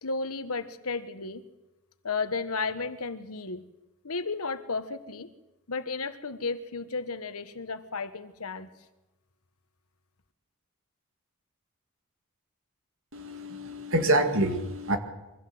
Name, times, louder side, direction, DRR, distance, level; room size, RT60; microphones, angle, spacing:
voice 1, 0.0-1.4 2.0-3.7 4.0-5.3 5.7-8.7, left 4 dB, 75° left, 11 dB, 1.3 m, -33 dB
voice 2, 13.1-15.0, right 1 dB, 60° right, 7 dB, 2.1 m, -26 dB
23.0 x 15.5 x 7.8 m, 1.0 s
head